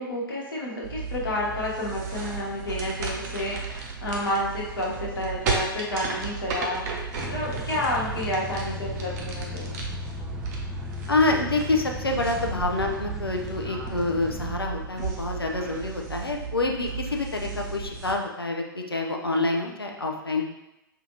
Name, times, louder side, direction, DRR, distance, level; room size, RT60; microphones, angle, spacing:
voice 1, 0.0-6.8 7.2-9.9, left 1 dB, 65° left, -3 dB, 1.1 m, -30 dB
sound 1, 0.8-18.1, right 5 dB, 45° right, 0.8 m, -34 dB
sound 2, 7.2-14.6, left 4 dB, 5° right, 0.3 m, -37 dB
voice 2, 11.1-20.4, left 2 dB, 90° left, 2 dB, 0.5 m, -27 dB
5.5 x 2.5 x 2.8 m, 0.92 s
figure-of-eight pair, 105°, 12 cm